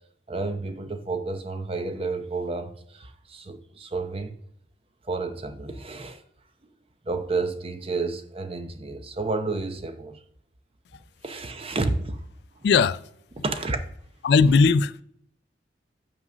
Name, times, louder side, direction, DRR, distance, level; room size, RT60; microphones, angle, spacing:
voice 1, 0.3-4.4 5.0-6.2 7.0-10.2 11.2-12.2 12.6-12.7 13.4-13.8, right 3 dB, 35° right, 0.7 m, -30 dB
voice 2, 12.6-13.0 14.2-15.0, left 5 dB, 65° left, 0.3 m, -18 dB
6.0 x 5.2 x 6.1 m
head